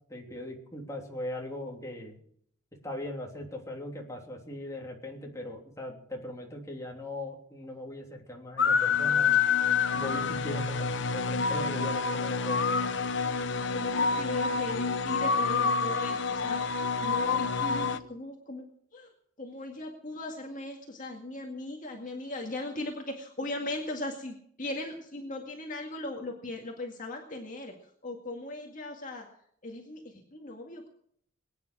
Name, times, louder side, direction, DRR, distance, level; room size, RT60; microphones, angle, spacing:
voice 1, 0.1-2.2 2.8-9.3 9.9-12.8, left 1 dB, 15° left, 0 dB, 3.2 m, -39 dB
sound 1, 8.6-18.0, left 5 dB, 60° left, 0.9 m, -27 dB
voice 2, 13.7-16.6 17.0-18.7 18.9-19.1 19.4-27.7 28.0-29.3 29.6-30.9, left 2 dB, 40° left, 1 dB, 2.0 m, -38 dB
22.0 x 9.8 x 6.3 m, 0.65 s
head